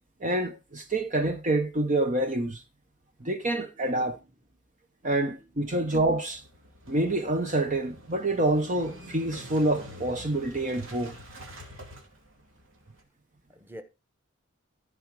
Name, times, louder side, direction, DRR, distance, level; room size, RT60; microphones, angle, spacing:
voice 1, 0.2-2.6 3.2-4.2 5.0-6.4 6.9-11.2, right 1 dB, 40° right, 0.9 m, -27 dB
voice 2, 3.2-4.3 5.0-5.9 13.5-13.8, equal, 10° right, 1.3 m, -51 dB
Motorcycle / Engine starting, 5.8-13.0, equal, 80° right, 2.7 m, -47 dB
14.5 x 4.9 x 4.8 m
head